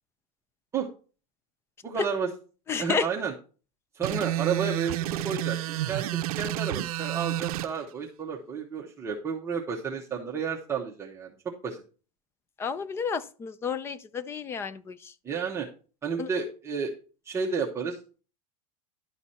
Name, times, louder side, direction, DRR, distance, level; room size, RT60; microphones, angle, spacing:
voice 1, 1.8-2.3 2.8-3.3 3.9-11.3 11.6-11.8 15.2-15.7 16.0-16.9 17.2-18.0, right 6 dB, 15° right, 0.9 m, -31 dB
voice 2, 2.7-3.1 12.6-15.1 16.2-16.3, left 6 dB, 15° left, 0.3 m, -31 dB
sound 1, 4.0-7.7, right 14 dB, 80° right, 0.6 m, -30 dB
11.0 x 6.1 x 4.2 m
supercardioid pair, 165°, 18 cm